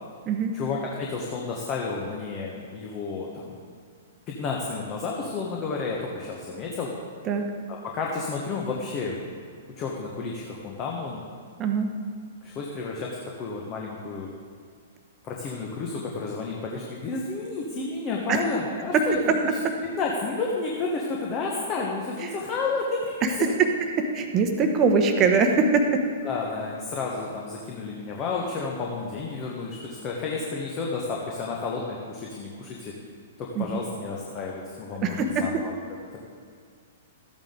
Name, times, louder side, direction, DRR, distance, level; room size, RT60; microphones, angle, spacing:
voice 1, 0.5-3.6 4.3-6.9 7.7-9.2 9.8-11.2 12.4-14.3 15.2-19.3 19.8-23.5 26.2-32.9 33.4-35.7, left 4 dB, 30° left, -2 dB, 1.2 m, -31 dB
voice 2, 11.6-11.9 18.3-18.4 18.9-19.0 22.2-22.3 23.2-23.7 24.0-26.0 33.5-33.7 35.0-35.5, right 4 dB, 30° right, 5 dB, 1.0 m, -22 dB
13.0 x 8.9 x 3.8 m, 2.1 s
figure-of-eight pair, 110°, 0 cm